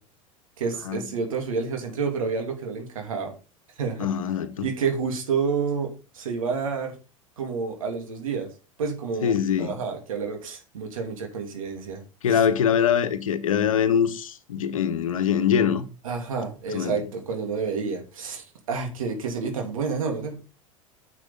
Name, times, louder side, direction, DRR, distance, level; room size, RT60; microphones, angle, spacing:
voice 1, 0.6-3.3 3.8-4.1 4.6-6.9 7.4-8.5 8.8-9.3 9.6-12.0 16.0-20.4, right 5 dB, 80° right, 2.9 m, -29 dB
voice 2, 4.0-4.6 9.2-9.7 12.2-15.9 16.7-17.0, left 8 dB, 80° left, 1.1 m, -23 dB
10.0 x 7.4 x 3.6 m
hypercardioid pair, 85°, 17 cm